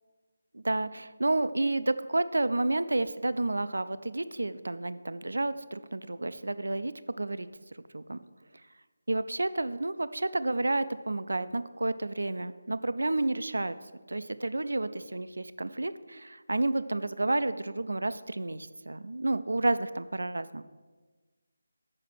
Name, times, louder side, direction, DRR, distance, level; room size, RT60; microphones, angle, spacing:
voice 1, 0.5-6.9 7.2-7.5 7.9-8.2 9.1-13.7 14.1-20.6, right 2 dB, 70° right, 13 dB, 0.4 m, -30 dB
7.6 x 5.7 x 6.5 m, 1.3 s
figure-of-eight pair, 155°, 0 cm